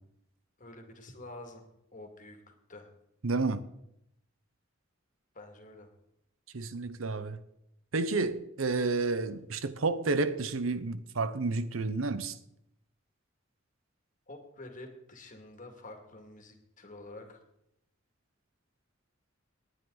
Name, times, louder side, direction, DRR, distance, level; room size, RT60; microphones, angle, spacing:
voice 1, 0.6-1.6 1.9-2.4 2.7-2.9 5.3-5.9 14.3-17.4, left 2 dB, 40° left, 2.2 m, -48 dB
voice 2, 3.2-3.6 6.5-7.4 7.9-12.3, right 3 dB, 85° right, 0.9 m, -30 dB
19.5 x 9.8 x 4.0 m
head